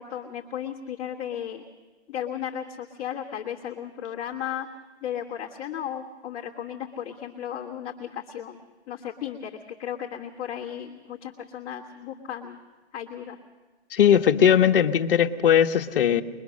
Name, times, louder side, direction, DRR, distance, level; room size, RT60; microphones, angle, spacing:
voice 1, 0.0-1.7 2.1-4.7 5.0-8.6 8.9-12.6 12.9-13.4, left 9 dB, 15° left, -6 dB, 1.2 m, -35 dB
voice 2, 13.9-16.2, left 9 dB, 55° left, 5 dB, 1.1 m, -19 dB
22.5 x 21.5 x 6.3 m, 1.4 s
hypercardioid pair, 160°, 34 cm